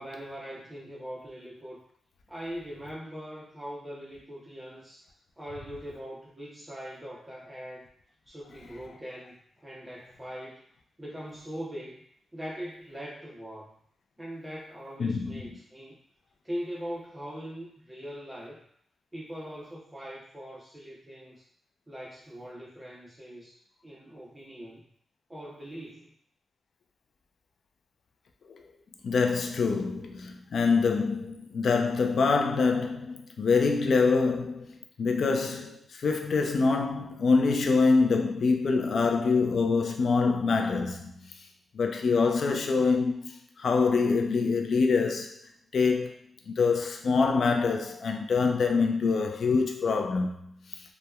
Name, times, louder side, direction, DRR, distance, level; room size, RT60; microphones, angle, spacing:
voice 1, 0.0-1.8 2.3-5.1 5.4-7.9 8.3-10.7 11.0-12.0 12.3-13.8 14.2-16.0 16.4-18.6 19.1-21.4 21.9-23.6 23.8-24.9 25.3-26.1, equal, 15° right, 0.6 m, -41 dB
voice 2, 15.0-15.6 28.5-28.6 29.0-41.3 41.7-45.4 45.7-46.1 46.5-50.8, left 4 dB, 70° left, 0.3 m, -25 dB
2.7 x 2.1 x 2.2 m
cardioid pair, 85°, 0 cm